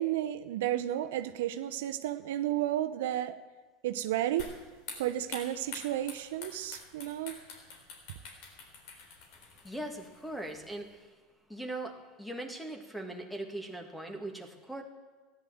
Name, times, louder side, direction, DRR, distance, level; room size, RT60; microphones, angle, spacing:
voice 1, 0.0-3.4 3.8-4.5 5.0-7.3, right 13 dB, 85° right, 9 dB, 0.7 m, -32 dB
sound 1, 4.4-11.0, left 4 dB, 65° left, 3.9 m, -48 dB
voice 2, 9.6-11.1 11.5-14.8, right 1 dB, 5° left, 5 dB, 2.1 m, -40 dB
14.5 x 10.5 x 7.8 m, 1.4 s
supercardioid pair, 110°, 0 cm